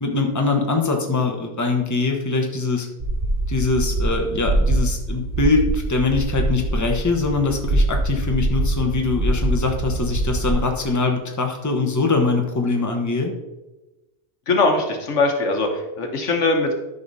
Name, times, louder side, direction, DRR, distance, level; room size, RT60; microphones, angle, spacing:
voice 1, 0.0-2.9 3.5-13.3, left 3 dB, 15° left, 2 dB, 1.0 m, -22 dB
sound 1, 3.0-10.5, right 2 dB, 50° right, 1.8 m, -23 dB
voice 2, 14.5-16.7, left 3 dB, 80° left, 3 dB, 1.5 m, -21 dB
11.5 x 5.5 x 4.2 m, 1.0 s
omnidirectional pair, 1.2 m